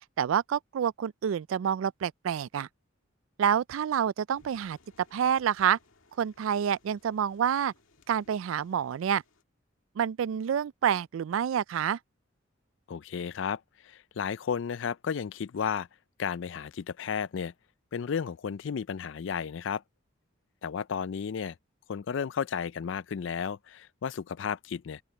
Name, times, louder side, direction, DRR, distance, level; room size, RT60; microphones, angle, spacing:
voice 1, 0.2-2.7 3.4-4.8 5.1-5.8 6.2-7.7 8.1-9.2 10.0-12.0, right 8 dB, 80° right, 0.3 m, -28 dB
sound 1, 4.3-9.4, left 3 dB, 90° left, 2.0 m, -63 dB
voice 2, 12.9-15.9 16.2-17.5 17.9-19.8 20.6-21.6 21.9-25.0, left 7 dB, 65° left, 0.4 m, -33 dB
open air
head